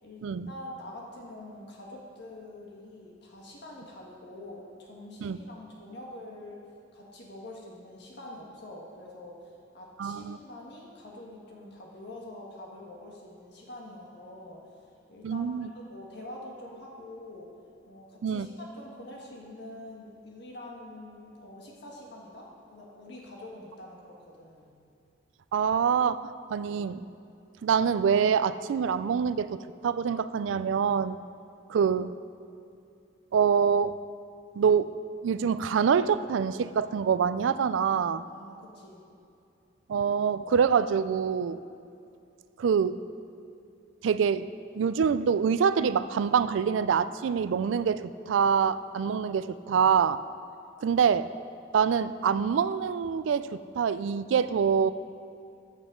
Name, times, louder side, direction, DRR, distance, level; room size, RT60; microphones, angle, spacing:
voice 1, 0.0-6.6 6.9-14.7 15.1-15.5 15.7-17.5 17.9-24.7 38.2-39.0, left 1 dB, 60° left, -2 dB, 1.4 m, -45 dB
voice 2, 10.0-10.4 15.2-15.7 18.2-18.5 25.5-27.0 27.6-31.2 31.7-32.1 33.3-34.0 34.6-34.9 35.2-38.2 39.9-41.6 42.6-43.0 44.0-44.5 44.7-50.2 50.8-51.3 51.7-53.5 53.7-54.9, right 7 dB, 80° right, 14 dB, 0.3 m, -25 dB
14.0 x 7.3 x 3.7 m, 2.6 s
head